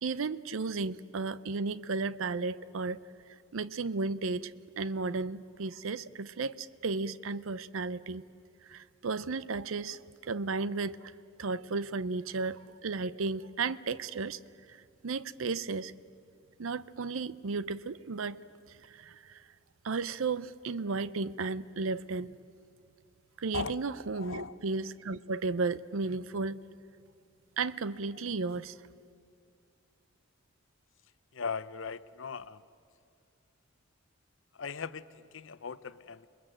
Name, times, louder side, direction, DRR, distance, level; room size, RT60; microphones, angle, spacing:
voice 1, 0.0-3.0 3.5-8.2 8.7-11.1 11.4-14.4 14.7-14.8 15.0-15.9 16.6-18.4 18.7-19.4 19.8-22.3 23.4-26.6 27.6-28.8, right 4 dB, 75° right, 17 dB, 0.6 m, -34 dB
voice 2, 24.1-24.6 31.3-32.6 34.6-36.3, left 5 dB, 65° left, 16 dB, 0.6 m, -39 dB
28.5 x 21.0 x 7.7 m, 2.3 s
head